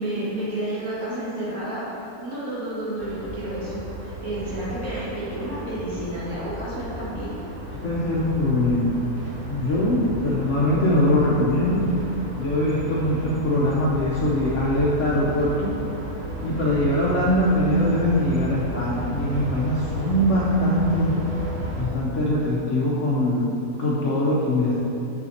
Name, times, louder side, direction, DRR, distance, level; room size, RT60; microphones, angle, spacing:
voice 1, 0.0-1.8 2.2-7.3, right 1 dB, 85° right, -8 dB, 2.7 m, -30 dB
sound 1, 3.0-21.8, right 1 dB, 60° right, 1.4 m, -34 dB
voice 2, 7.7-9.0 9.5-11.9 12.4-15.8 16.4-21.2 21.8-24.7, left 1 dB, 65° left, -6 dB, 1.2 m, -22 dB
7.2 x 6.9 x 4.3 m, 2.8 s
omnidirectional pair, 1.5 m